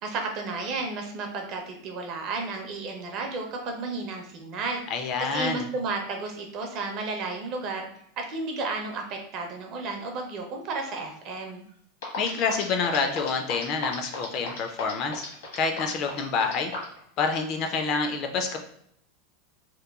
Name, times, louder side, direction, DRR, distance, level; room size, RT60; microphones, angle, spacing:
voice 1, 0.0-4.8 5.2-7.9 8.2-11.6, right 3 dB, 40° right, 2 dB, 0.5 m, -32 dB
voice 2, 4.9-5.7 12.2-15.2 15.5-16.7 17.2-18.6, left 5 dB, 40° left, 5 dB, 0.3 m, -27 dB
sound 1, 11.7-11.8 12.0-17.0, left 4 dB, 85° left, 1.0 m, -35 dB
2.9 x 2.1 x 2.3 m, 0.69 s
supercardioid pair, 155°, 0 cm